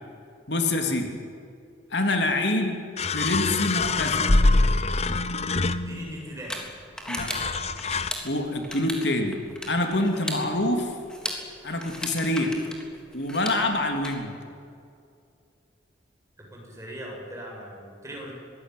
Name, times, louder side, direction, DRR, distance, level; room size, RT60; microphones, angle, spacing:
voice 1, 0.5-1.1 1.9-2.8 3.1-4.3 7.1-7.5 8.2-9.4 9.7-11.0 11.6-12.5 13.1-14.3, left 2 dB, 65° left, 4 dB, 3.1 m, -26 dB
sound 1, 2.3-2.4 3.0-6.2 7.2-8.1, left 2 dB, 35° left, 0.9 m, -24 dB
sound 2, 5.4-14.1, left 1 dB, 5° left, 3.5 m, -38 dB
voice 2, 5.8-6.6 16.5-18.3, equal, 15° right, -2 dB, 7.3 m, -39 dB
25.0 x 19.5 x 9.5 m, 2.4 s
head